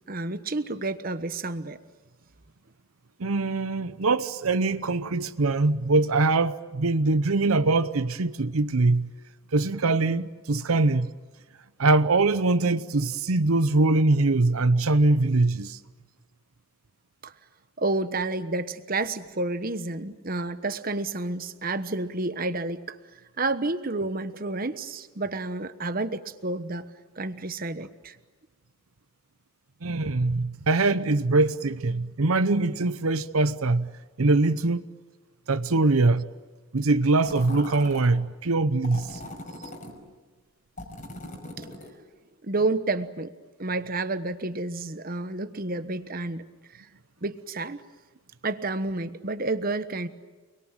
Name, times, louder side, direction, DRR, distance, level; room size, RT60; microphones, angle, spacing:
voice 1, 0.1-1.8 17.2-17.3 17.8-23.0 23.4-26.9 27.2-28.2 39.6-39.7 41.6-41.7 42.4-43.3 43.6-46.4 46.7-46.9 47.2-47.8 48.4-50.1, right 2 dB, 40° right, 1.2 m, -30 dB
voice 2, 3.2-9.1 9.5-11.1 11.8-15.8 29.8-34.8 35.5-36.3 36.7-39.2, right 3 dB, 80° right, 0.8 m, -23 dB
sound 1, 37.2-38.1 38.8-39.9 40.8-42.0, left 1 dB, 35° left, 5.3 m, -40 dB
30.0 x 22.0 x 9.0 m
head